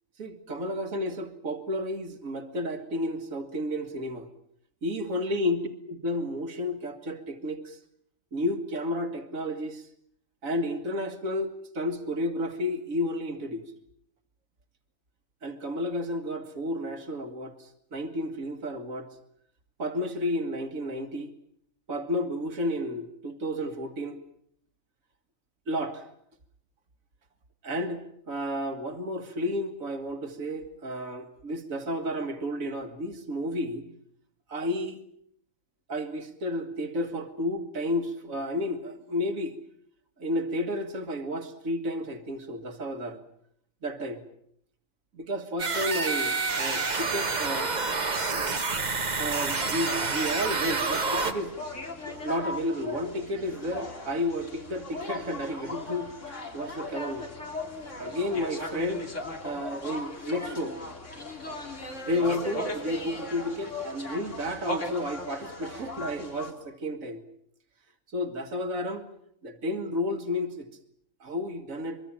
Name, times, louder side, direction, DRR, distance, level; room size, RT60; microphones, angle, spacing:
voice 1, 0.2-4.3 4.8-7.8 8.3-9.9 10.4-13.7 15.4-19.1 19.8-21.3 21.9-24.2 25.7-26.0 27.6-34.0 34.5-35.0 35.9-39.6 40.2-43.2 43.8-44.2 45.1-47.7 49.2-51.6 52.0-56.1 56.5-57.3 57.8-59.1 59.4-60.8 62.0-67.2 68.1-69.1 69.4-70.7 71.2-72.0, left 1 dB, 65° right, 7 dB, 2.2 m, -32 dB
sound 1, 45.6-51.3, right 4 dB, 30° right, 1.3 m, -28 dB
sound 2, 49.5-66.5, left 2 dB, 55° left, 3.3 m, -38 dB
24.0 x 23.0 x 7.4 m, 0.70 s
omnidirectional pair, 1.5 m